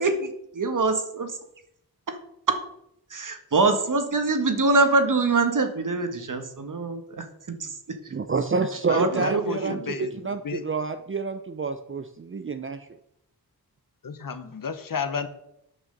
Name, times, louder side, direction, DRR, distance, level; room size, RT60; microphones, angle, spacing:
voice 1, 0.0-1.4 2.1-2.2 2.5-2.6 3.1-8.1 8.9-10.2, right 3 dB, 55° right, 7 dB, 1.6 m, -25 dB
voice 2, 8.1-12.9, right 4 dB, 35° right, 8 dB, 0.6 m, -28 dB
voice 3, 8.9-10.6 14.0-15.3, left 6 dB, 60° left, 10 dB, 1.0 m, -32 dB
8.9 x 6.2 x 6.7 m, 0.78 s
cardioid pair, 70°, 38 cm